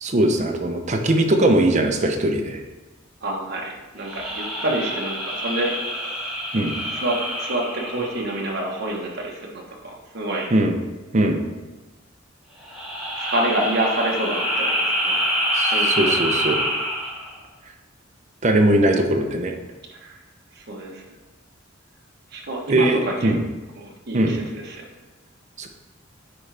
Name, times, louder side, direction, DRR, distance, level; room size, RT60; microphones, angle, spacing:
voice 1, 0.0-2.6 6.5-6.8 10.5-10.8 11.1-11.4 15.5-16.6 18.4-19.6 22.7-23.4 24.1-24.4 25.6-25.7, right 1 dB, 35° right, 4 dB, 0.7 m, -20 dB
voice 2, 3.2-5.7 7.0-10.5 13.2-15.2 15.7-16.1 20.0-20.2 20.6-21.0 22.3-23.3 23.8-24.8, right 1 dB, 55° right, -1 dB, 1.2 m, -27 dB
sound 1, 4.0-8.8 12.6-17.3, equal, ahead, 1.8 m, -26 dB
9.4 x 3.8 x 3.4 m, 1.1 s
head